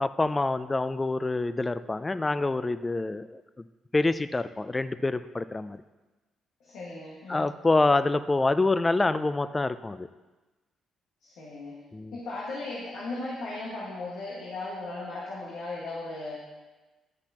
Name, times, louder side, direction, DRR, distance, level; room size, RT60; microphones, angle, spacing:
voice 1, 0.0-3.4 3.9-5.8 7.3-10.1 11.9-12.2, left 2 dB, 20° left, 13 dB, 0.3 m, -26 dB
voice 2, 6.6-7.4 11.2-11.8 12.1-16.4, left 2 dB, 80° left, -7 dB, 1.6 m, -37 dB
9.8 x 6.0 x 2.9 m, 1.2 s
cardioid pair, 90°, 0 cm